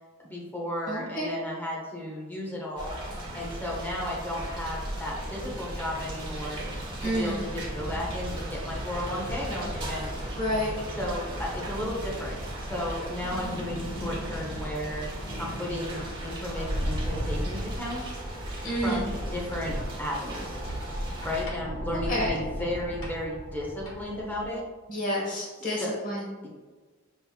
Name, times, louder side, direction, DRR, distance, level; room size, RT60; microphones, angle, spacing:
voice 1, 0.2-3.0 3.3-6.6 7.0-10.1 10.9-15.1 15.4-18.0 18.8-20.6 20.9-24.6 25.5-25.9 26.4-26.5, left 1 dB, 10° left, -4 dB, 0.8 m, -34 dB
voice 2, 0.9-1.3 7.0-7.4 10.4-10.8 18.6-19.1 22.1-22.3 24.9-26.3, equal, 40° left, -4 dB, 1.2 m, -29 dB
sound 1, 2.8-21.4, right 1 dB, 25° right, 0.9 m, -37 dB
sound 2, 13.2-24.4, equal, 70° left, 1.2 m, -36 dB
5.5 x 3.2 x 2.3 m, 1.3 s
head